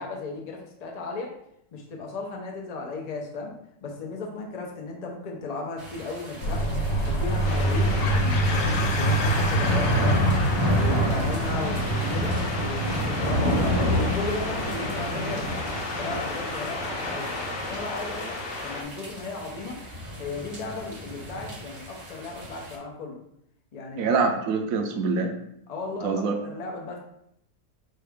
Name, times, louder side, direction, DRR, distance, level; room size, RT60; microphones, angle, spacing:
voice 1, 0.0-1.3 1.7-3.5 3.8-6.7 7.1-10.2 10.7-12.3 12.6-15.5 16.0-17.3 17.7-19.8 20.2-23.2 23.7-24.3 25.7-27.0, left 3 dB, 75° left, 0 dB, 0.3 m, -35 dB
sound 1, 5.8-22.8, equal, 30° right, 0.5 m, -30 dB
sound 2, 6.4-17.5, right 1 dB, 90° left, 1.4 m, -27 dB
sound 3, 7.4-18.8, left 2 dB, 55° left, 1.2 m, -34 dB
voice 2, 24.0-25.3 26.0-26.4, right 4 dB, 70° right, 4 dB, 0.8 m, -25 dB
4.6 x 3.2 x 3.5 m, 0.75 s
omnidirectional pair, 1.9 m